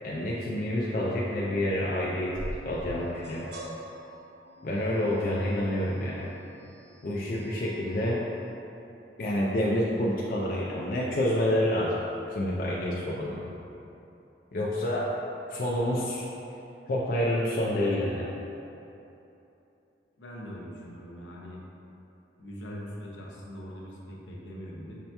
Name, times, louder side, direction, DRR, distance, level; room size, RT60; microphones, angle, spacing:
voice 1, 0.0-2.4 2.6-3.4 4.6-6.3 7.0-8.2 9.2-12.0 12.3-13.4 14.5-15.1 15.5-16.3 16.9-18.3, left 1 dB, 50° left, -5 dB, 0.3 m, -28 dB
sound 1, 2.3-8.5, equal, 65° right, 0.5 m, -44 dB
voice 2, 20.2-21.6 22.4-25.0, equal, 80° left, -3 dB, 0.7 m, -42 dB
6.5 x 2.8 x 2.2 m, 2.9 s
head